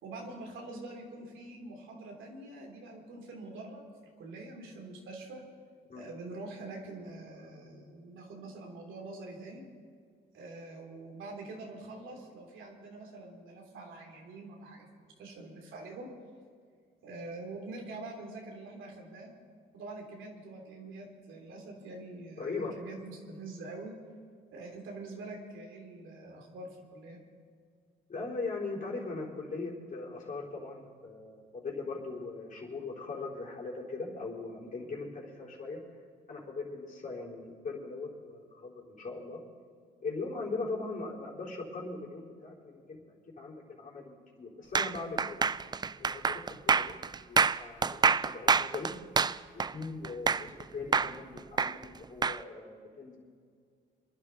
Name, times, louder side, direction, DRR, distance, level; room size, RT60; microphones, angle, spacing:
voice 1, 0.0-3.9 4.2-5.4 5.9-9.6 10.3-16.1 17.0-19.3 19.7-23.9 24.5-27.2, right 2 dB, 80° right, 1 dB, 3.1 m, -45 dB
voice 2, 22.4-22.8 28.1-35.8 36.3-39.4 40.0-45.5 46.0-47.0 47.3-48.9 49.5-53.2, left 3 dB, 45° left, -3 dB, 4.4 m, -40 dB
sound 1, 44.8-50.6 50.9-52.4, right 5 dB, 20° right, 0.3 m, -27 dB
25.5 x 11.0 x 4.1 m, 2.1 s
cardioid pair, 90°, 20 cm